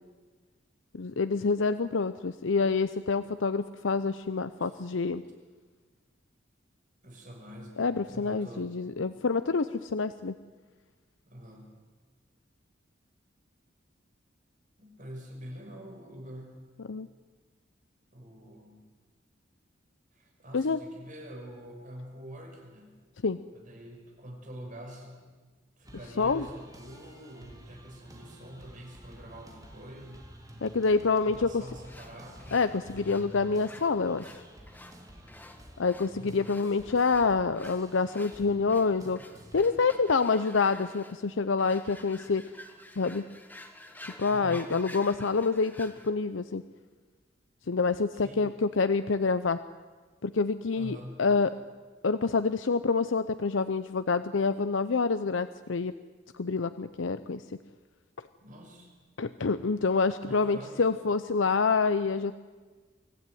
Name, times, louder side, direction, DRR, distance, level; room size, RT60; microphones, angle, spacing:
voice 1, 0.9-5.2 7.8-10.3 16.9-17.1 20.5-20.8 23.2-23.4 26.2-26.4 30.6-31.6 32.5-34.3 35.8-39.2 39.5-42.4 43.0-43.3 44.0-46.6 47.7-49.6 50.2-51.5 52.0-55.9 56.3-57.4 59.2-62.3, left 4 dB, 85° left, 11 dB, 0.7 m, -27 dB
voice 2, 7.0-8.8 11.3-11.7 14.8-16.6 18.1-18.8 20.1-22.9 23.5-25.2 25.8-30.2 31.2-32.6 36.1-36.5 44.2-44.7 48.1-48.5 50.7-51.2 58.4-58.9 60.2-60.8, equal, 45° right, 2 dB, 5.7 m, -46 dB
sound 1, 25.8-39.6, equal, 20° right, 3.1 m, -51 dB
sound 2, 31.8-46.1, left 1 dB, 10° left, 1.8 m, -50 dB
24.5 x 15.5 x 9.4 m, 1.4 s
head